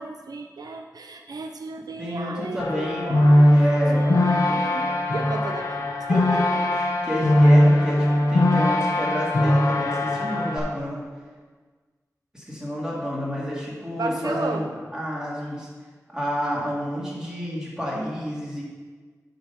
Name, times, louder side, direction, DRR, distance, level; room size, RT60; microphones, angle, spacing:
voice 1, 0.0-3.5 4.0-5.9 6.1-6.2 14.0-14.7, right 3 dB, 85° right, 5 dB, 0.5 m, -34 dB
voice 2, 2.0-3.2 3.5-4.0 6.1-11.0 12.3-15.7 16.1-18.6, equal, 10° right, -5 dB, 2.5 m, -30 dB
sound 1, 2.6-10.6, left 1 dB, 65° left, 1.1 m, -20 dB
9.2 x 4.0 x 5.7 m, 1.4 s
wide cardioid pair, 80°, 6 cm